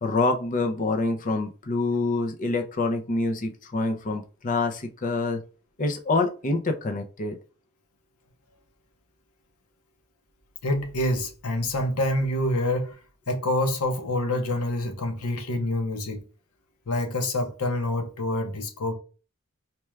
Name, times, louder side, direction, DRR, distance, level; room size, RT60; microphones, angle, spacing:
voice 1, 0.0-5.4 5.8-7.4, left 3 dB, 35° left, 0.5 m, -26 dB
voice 2, 10.6-13.0 13.3-16.2 16.9-18.9, left 1 dB, 80° left, 0.9 m, -26 dB
4.4 x 2.3 x 3.2 m
head